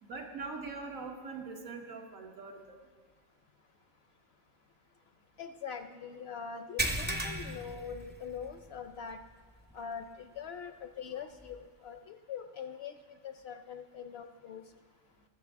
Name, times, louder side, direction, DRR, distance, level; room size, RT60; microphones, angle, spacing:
voice 1, 0.0-2.7, right 4 dB, 85° right, 1 dB, 1.7 m, -42 dB
voice 2, 5.4-9.2 9.7-13.0 13.2-14.6, left 7 dB, 65° left, 8 dB, 0.7 m, -43 dB
sound 1, 6.8-8.7 9.0-9.2 9.7-9.8 11.5-11.6, right 1 dB, 15° right, 0.4 m, -35 dB
20.5 x 6.9 x 3.5 m, 1.5 s
omnidirectional pair, 1.4 m